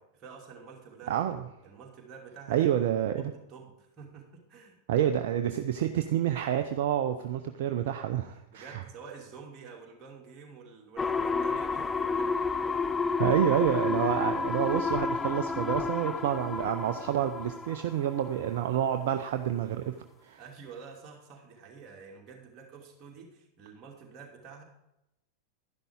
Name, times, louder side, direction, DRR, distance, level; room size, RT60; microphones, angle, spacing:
voice 1, 0.0-1.2 1.6-2.8 3.2-4.8 8.5-11.9 12.2-12.3 20.4-24.6, right 5 dB, 30° right, -1 dB, 2.7 m, -48 dB
voice 2, 1.1-1.4 2.5-3.3 4.9-8.8 13.2-19.9 20.2-20.4, right 10 dB, 55° right, 7 dB, 0.6 m, -28 dB
sound 1, 11.0-18.6 19.0-19.1, left 4 dB, 15° left, 0.4 m, -31 dB
11.5 x 11.0 x 3.7 m, 0.88 s
figure-of-eight pair, 90°, 0 cm